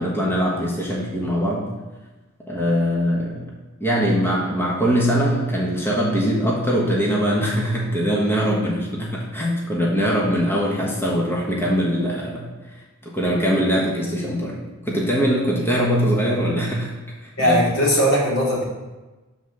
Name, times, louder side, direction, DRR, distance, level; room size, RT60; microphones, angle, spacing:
voice 1, 0.0-1.7 2.5-3.4 3.8-12.5 13.0-14.6 14.8-16.9 17.2-17.6, equal, 10° left, -4 dB, 1.2 m, -22 dB
voice 2, 17.4-18.6, equal, 75° left, -4 dB, 2.5 m, -19 dB
7.8 x 4.1 x 6.4 m, 1.2 s
head